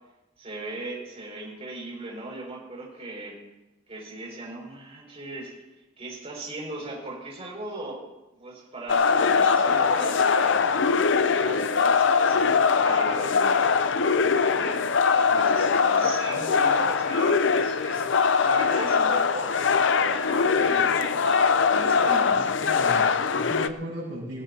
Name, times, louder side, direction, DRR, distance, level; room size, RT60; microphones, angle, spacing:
voice 1, 0.4-3.4 3.9-5.5 6.0-8.0 8.3-10.6 11.4-13.7 14.5-14.9 15.1-18.1 18.4-22.5, right 2 dB, 35° right, -2 dB, 6.0 m, -38 dB
sound 1, 8.9-23.7, left 5 dB, 70° left, 0.6 m, -22 dB
voice 2, 22.4-24.4, equal, 85° right, -8 dB, 6.8 m, -36 dB
19.0 x 17.5 x 2.9 m, 1.0 s
head